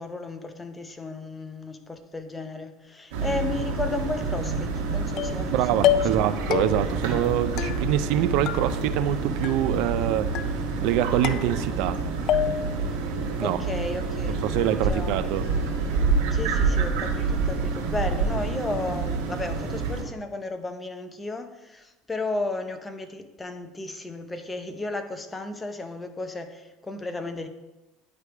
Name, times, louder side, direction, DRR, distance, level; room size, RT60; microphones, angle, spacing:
voice 1, 0.0-6.4 13.4-14.4 14.9-15.5 16.3-27.5, left 2 dB, 15° left, 8 dB, 0.7 m, -34 dB
sound 1, 3.1-20.0, right 4 dB, 85° right, 1.3 m, -28 dB
sound 2, 5.2-5.5 5.8-6.2 6.5-7.0 7.6-8.2 8.5-9.1 9.4-10.0 10.3-10.9 11.2-11.9 12.3-12.8, left 11 dB, 55° left, 0.3 m, -28 dB
voice 2, 5.5-12.0 13.4-13.6 14.4-15.4, right 12 dB, 70° right, 12 dB, 0.4 m, -25 dB
9.7 x 3.4 x 4.6 m, 1.0 s
supercardioid pair, 115°, 0 cm